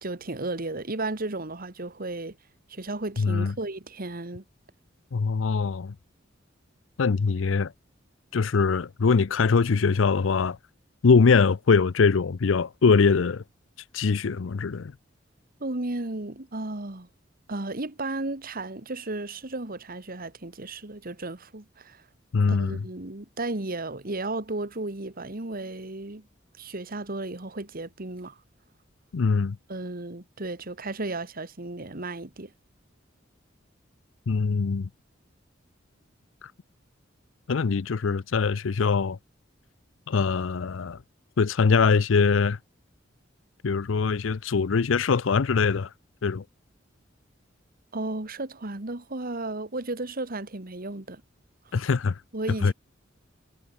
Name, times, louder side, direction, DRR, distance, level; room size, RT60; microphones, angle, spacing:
voice 1, 0.0-2.4 2.7-4.4 15.6-17.1 17.5-22.0 22.5-26.3 26.6-28.4 29.7-32.5 47.9-51.2 52.3-52.7, right 2 dB, 50° right, 1.9 m, -34 dB
voice 2, 3.2-3.5 5.1-5.9 7.0-7.7 8.3-10.6 11.0-13.4 13.9-14.9 22.3-22.8 29.1-29.6 34.3-34.9 37.5-39.2 40.1-41.0 41.4-42.6 43.6-45.9 46.2-46.4 51.7-52.2 52.6-52.7, left 5 dB, 90° left, 0.5 m, -22 dB
head